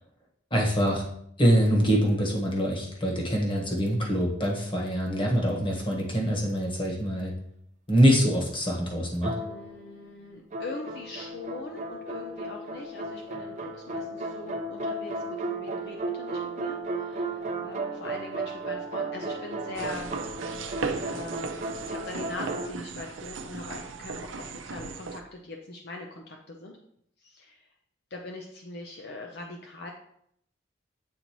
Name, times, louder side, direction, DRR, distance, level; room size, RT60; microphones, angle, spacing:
voice 1, 0.5-1.0 1.4-7.3 7.9-9.3, equal, 25° left, -1 dB, 1.4 m, -24 dB
sound 1, 9.2-10.0 10.5-22.7, right 2 dB, 40° right, 0.6 m, -34 dB
voice 2, 9.4-20.1 21.0-26.8 27.2-27.6 28.1-29.9, left 2 dB, 55° left, 1 dB, 0.6 m, -42 dB
sound 2, 19.7-25.2, right 4 dB, 85° right, 0.6 m, -36 dB
8.7 x 4.0 x 3.0 m, 0.71 s
head